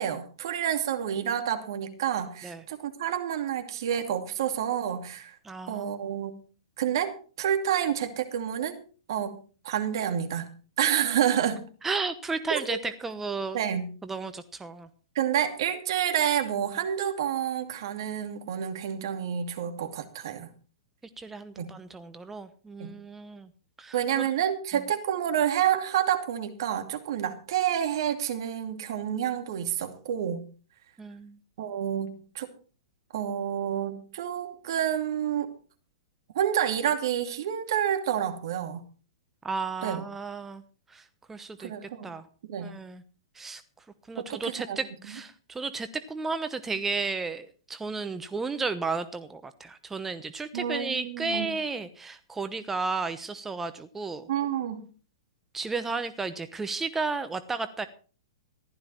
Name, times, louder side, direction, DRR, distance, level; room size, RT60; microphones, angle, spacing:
voice 1, 0.0-5.4 5.7-6.3 6.8-8.8 9.1-9.4 9.6-10.5 10.8-11.6 12.5-12.8 13.5-13.9 15.1-20.5 21.6-21.7 22.8-22.9 23.9-30.4 31.6-32.5 33.1-35.5 36.3-38.8 39.8-40.0 41.6-42.1 42.4-42.7 44.2-44.8 50.5-51.5 54.3-54.8, right 9 dB, 60° right, 7 dB, 2.5 m, -29 dB
voice 2, 5.4-5.9 11.8-13.6 14.0-14.9 21.2-23.5 23.8-24.0 31.0-31.4 39.4-40.6 40.9-41.7 42.0-42.3 42.6-43.0 43.3-43.6 44.1-54.3 55.5-57.9, right 4 dB, 10° right, 10 dB, 1.0 m, -33 dB
15.0 x 12.0 x 4.4 m, 0.39 s
hypercardioid pair, 110°, 3 cm